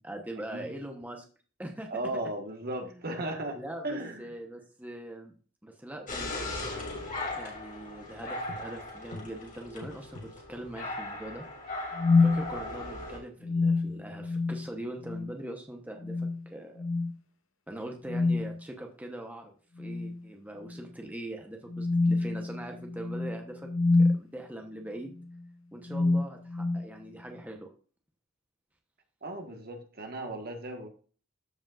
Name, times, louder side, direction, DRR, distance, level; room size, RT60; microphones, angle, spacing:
voice 1, 0.0-1.2 1.6-1.9 2.8-3.2 3.5-5.3 5.6-6.5 7.3-11.4 12.2-16.8 17.7-23.7 24.0-25.2 25.7-27.7, right 1 dB, 10° right, 2 dB, 1.0 m, -42 dB
voice 2, 1.9-3.6 3.8-4.3 29.2-30.9, right 1 dB, 50° right, 4 dB, 1.5 m, -36 dB
sound 1, 6.1-13.2, left 2 dB, 40° left, 2.7 m, -38 dB
sound 2, 8.5-8.7 9.1-9.3 9.8-10.3 11.9-12.5 13.4-14.7 15.0-15.3 16.0-16.4 16.8-17.1 18.0-18.6 19.8-20.2 20.7-20.8 21.7-24.3 25.2-25.4 25.9-26.9, left 3 dB, 80° left, 1.0 m, -27 dB
13.5 x 5.2 x 2.5 m, 0.39 s
head